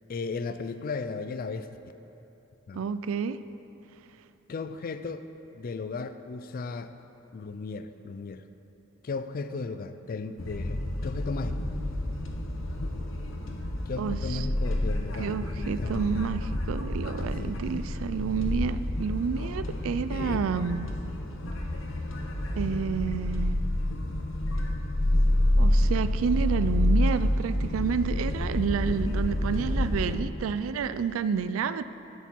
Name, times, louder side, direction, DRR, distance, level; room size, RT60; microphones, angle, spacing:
voice 1, 0.1-1.7 2.7-2.8 4.5-5.3 5.5-6.9 7.3-8.4 9.0-11.6 13.9-16.2 17.0-17.6 20.1-20.4, left 4 dB, 45° left, 11 dB, 0.4 m, -36 dB
voice 2, 2.7-3.4 14.0-14.5 15.2-20.9 22.6-23.6 25.6-31.8, right 6 dB, 80° right, 13 dB, 0.3 m, -30 dB
sound 1, 10.4-30.2, left 1 dB, 75° left, 0.9 m, -28 dB
10.5 x 8.1 x 4.5 m, 3.0 s
head